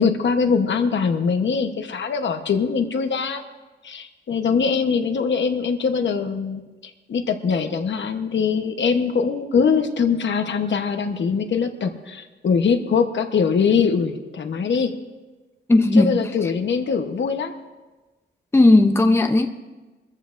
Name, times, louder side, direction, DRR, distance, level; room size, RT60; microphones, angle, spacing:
voice 1, 0.0-3.4 3.8-14.9 15.9-17.5, left 5 dB, 65° left, 6 dB, 1.0 m, -22 dB
voice 2, 15.7-16.1 18.5-19.5, left 2 dB, 10° left, 6 dB, 0.6 m, -15 dB
23.0 x 14.0 x 2.5 m, 1.2 s
wide cardioid pair, 155°, 20 cm